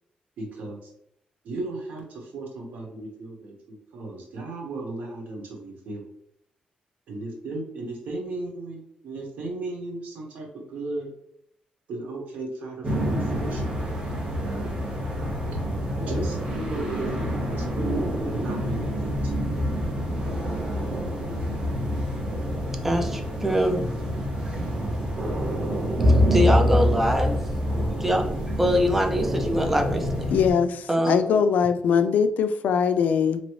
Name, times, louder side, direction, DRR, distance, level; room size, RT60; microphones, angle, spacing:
voice 1, 0.4-0.8 1.4-6.0 7.1-11.1 11.9-14.7 16.1-19.4, right 2 dB, 80° right, 1 dB, 1.1 m, -35 dB
sound 1, 12.8-30.5, equal, 30° right, 0.9 m, -26 dB
voice 2, 22.8-23.9 24.5-24.7 26.0-27.4 28.0-30.3 30.9-31.2, equal, 10° right, 3 dB, 0.4 m, -24 dB
voice 3, 30.3-33.4, left 6 dB, 80° left, 10 dB, 0.3 m, -22 dB
4.0 x 3.0 x 3.1 m, 0.76 s
wide cardioid pair, 170°, 3 cm